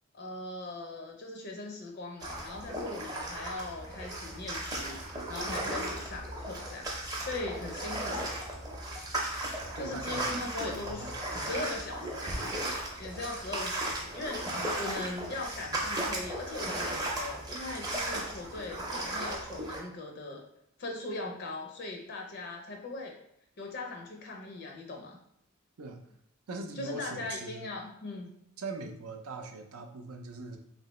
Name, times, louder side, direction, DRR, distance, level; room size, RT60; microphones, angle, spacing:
voice 1, 0.1-5.0 5.3-6.9 7.2-8.3 9.7-12.4 13.0-14.4 14.8-20.4 20.8-23.1 23.6-25.2 26.8-28.3, left 2 dB, 45° left, 1 dB, 0.5 m, -40 dB
sound 1, 2.2-19.8, right 1 dB, 15° right, 0.5 m, -36 dB
voice 2, 9.8-11.1 25.8-26.0 26.5-27.7 28.6-30.6, right 3 dB, 80° right, 5 dB, 0.5 m, -41 dB
3.2 x 2.8 x 3.0 m, 0.73 s
head